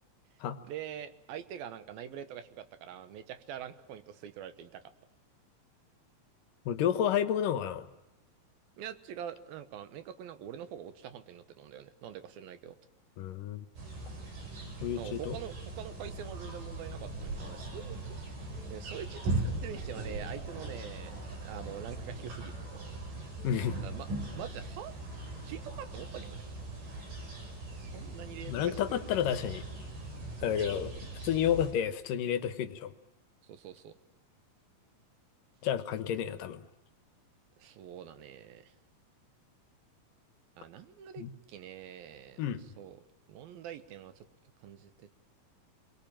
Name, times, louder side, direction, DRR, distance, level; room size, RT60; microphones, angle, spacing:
voice 1, 0.6-4.8 8.8-12.8 14.9-18.3 18.7-21.1 21.4-22.6 23.8-24.1 24.3-24.9 25.4-26.4 27.7-29.4 30.4-30.6 33.5-33.9 37.6-38.7 40.6-44.2 44.6-45.1, right 9 dB, 80° right, 12 dB, 3.1 m, -45 dB
voice 2, 6.7-7.9 13.2-13.7 14.8-15.4 23.4-23.8 28.5-29.6 30.4-30.9 31.2-32.9 35.6-36.6 41.2-41.3 42.4-42.6, left 9 dB, 70° left, 12 dB, 2.6 m, -30 dB
sound 1, 13.8-31.7, right 2 dB, 65° right, 7.1 m, -40 dB
28.0 x 23.0 x 8.9 m, 0.98 s
omnidirectional pair, 4.2 m